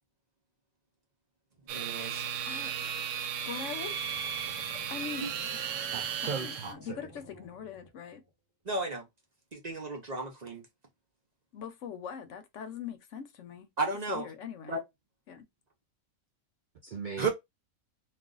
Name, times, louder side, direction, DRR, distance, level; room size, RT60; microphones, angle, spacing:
voice 1, 1.7-2.2 5.2-5.3 8.7-9.1 9.5-10.6 13.8-14.3 14.7-14.8 17.2-17.3, right 3 dB, 40° right, 0.7 m, -33 dB
sound 1, 1.7-6.7, right 8 dB, 70° right, 0.9 m, -35 dB
voice 2, 3.5-4.0 4.9-5.9 6.2-8.2 11.5-13.7 14.1-14.8 15.3-15.5, left 7 dB, 70° left, 0.9 m, -42 dB
sound 2, 4.0-8.3, equal, 20° left, 0.8 m, -54 dB
voice 3, 5.6-7.1 16.8-17.3, right 5 dB, 85° right, 0.4 m, -39 dB
2.4 x 2.4 x 3.7 m
omnidirectional pair, 1.4 m